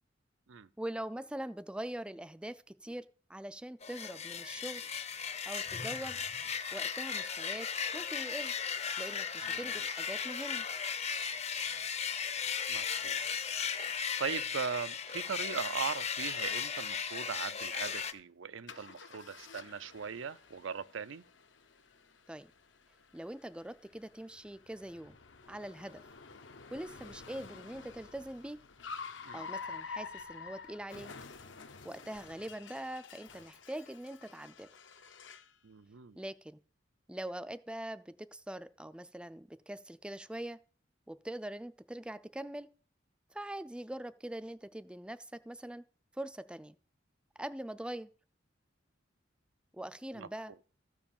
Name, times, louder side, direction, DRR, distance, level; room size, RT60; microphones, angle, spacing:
voice 1, 0.8-3.0 3.3-4.8 5.5-6.2 6.7-7.7 7.9-8.5 9.0-10.7 22.3-22.5 23.1-25.2 25.5-26.0 26.7-28.6 29.3-31.1 31.8-34.7 36.2-36.6 37.1-40.6 41.1-42.7 43.3-45.8 46.1-46.8 47.4-48.1 49.7-50.5, right 1 dB, 5° right, 0.4 m, -43 dB
sound 1, 3.8-18.1, left 6 dB, 35° left, 0.7 m, -36 dB
voice 2, 12.7-13.2 13.5-13.9 14.2-21.2 29.2-29.4 35.6-36.2 50.1-50.3, right 6 dB, 85° right, 0.6 m, -39 dB
Car, 18.7-35.6, left 5 dB, 70° left, 0.9 m, -49 dB
13.5 x 4.7 x 7.2 m
head